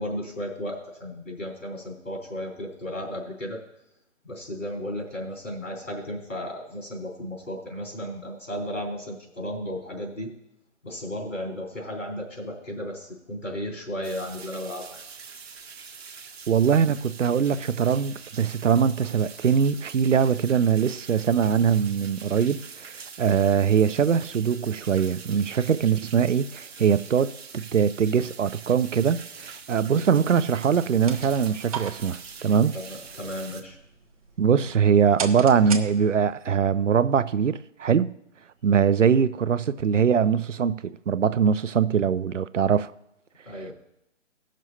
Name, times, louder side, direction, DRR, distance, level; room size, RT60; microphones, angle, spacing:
voice 1, 0.0-3.6 4.2-10.3 10.8-15.0 32.7-33.8 43.4-43.7, equal, 90° left, 3.8 m, -34 dB
sound 1, 14.0-33.6, right 6 dB, 55° right, 1.1 m, -44 dB
voice 2, 16.5-22.9 23.2-32.7 34.4-38.1 38.6-42.9, right 7 dB, 75° right, 0.6 m, -22 dB
sound 2, 30.9-36.4, right 6 dB, 30° right, 0.7 m, -39 dB
18.0 x 6.2 x 2.8 m
figure-of-eight pair, 140°, 37 cm